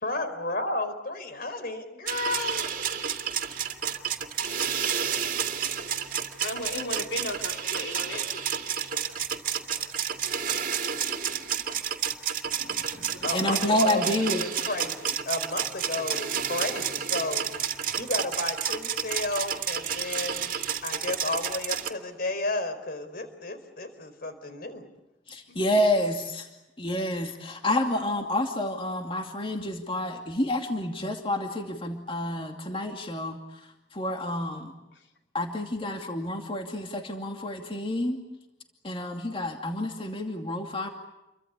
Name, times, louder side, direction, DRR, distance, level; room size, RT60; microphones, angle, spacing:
voice 1, 0.0-2.6 13.2-13.6 13.8-17.4 18.0-20.5 20.8-24.9, left 2 dB, 55° left, 10 dB, 4.3 m, -32 dB
sound 1, 2.1-21.9, right 8 dB, 50° right, 2.4 m, -30 dB
voice 2, 6.4-8.6 13.1-13.8 25.5-25.6, left 2 dB, 85° left, 3 dB, 3.7 m, -36 dB
voice 3, 12.6-14.4 25.3-26.5 26.8-33.4 33.9-34.7 35.3-38.2 38.8-40.9, left 1 dB, 30° left, 3 dB, 2.5 m, -29 dB
29.5 x 24.0 x 8.1 m, 0.96 s
head